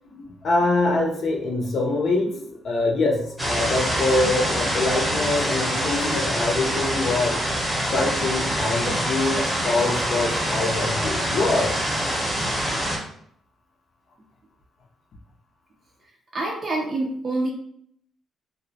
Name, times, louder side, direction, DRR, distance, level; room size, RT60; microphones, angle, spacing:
voice 1, 0.4-7.4 7.9-11.8, left 2 dB, 60° left, -1 dB, 0.5 m, -24 dB
sound 1, 3.4-13.0, equal, 5° right, 0.7 m, -25 dB
voice 2, 16.3-17.5, right 2 dB, 45° right, -1 dB, 0.4 m, -26 dB
2.3 x 2.0 x 2.6 m, 0.67 s
cardioid pair, 90°, 0 cm